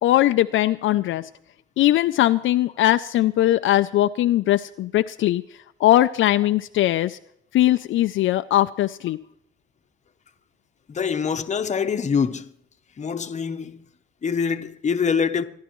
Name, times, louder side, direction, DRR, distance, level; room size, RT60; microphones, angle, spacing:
voice 1, 0.0-1.3 1.8-5.4 5.8-7.2 7.5-9.2, left 14 dB, 70° left, 0.4 m, -20 dB
voice 2, 10.9-12.5 13.0-13.8 14.2-15.4, left 6 dB, 35° left, 0.9 m, -24 dB
26.5 x 11.5 x 3.0 m
cardioid pair, 110°, 21 cm